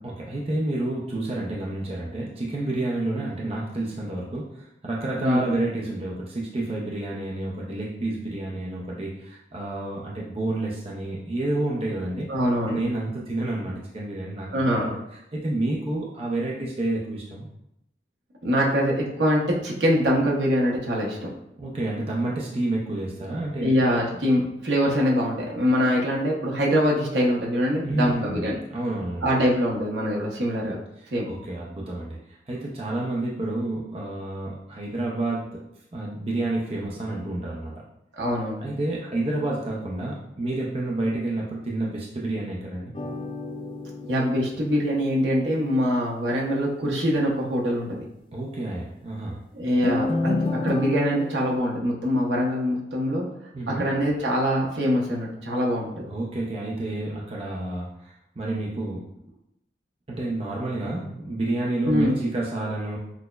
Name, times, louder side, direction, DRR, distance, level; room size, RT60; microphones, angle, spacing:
voice 1, 0.0-12.3 12.7-15.0 15.3-17.5 21.6-23.7 27.8-29.3 31.3-35.6 35.9-37.7 38.6-42.9 48.3-49.4 53.5-53.8 56.1-59.1 60.1-63.0, right 2 dB, 35° right, -3 dB, 0.5 m, -29 dB
voice 2, 5.2-5.5 12.3-12.8 14.5-14.9 18.4-21.3 23.6-28.6 29.2-30.8 31.1-31.3 38.1-38.6 44.1-48.0 49.5-53.3 53.7-56.1 61.8-62.1, equal, 80° right, -3 dB, 0.8 m, -24 dB
sound 1, 42.9-45.5 49.8-51.6, left 2 dB, 30° left, 0.3 m, -30 dB
5.9 x 2.1 x 2.2 m, 0.81 s
head